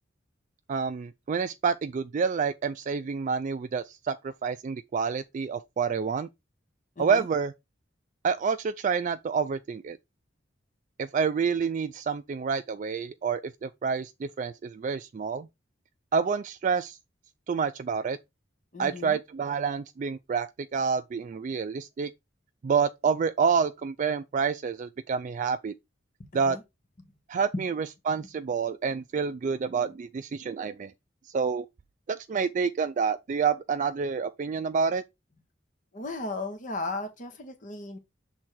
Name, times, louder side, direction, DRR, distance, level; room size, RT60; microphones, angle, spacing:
voice 1, 0.7-6.3 7.0-7.5 8.2-10.0 11.0-15.5 16.1-17.0 17.5-18.2 18.8-22.1 22.6-25.7 26.3-26.6 27.3-30.9 31.3-31.7 32.1-35.0, right 6 dB, 45° right, 0.3 m, -28 dB
voice 2, 7.0-7.3 18.7-19.2 26.2-26.6 27.5-27.6 35.9-38.0, left 2 dB, 45° left, 1.2 m, -35 dB
6.2 x 3.6 x 4.4 m
head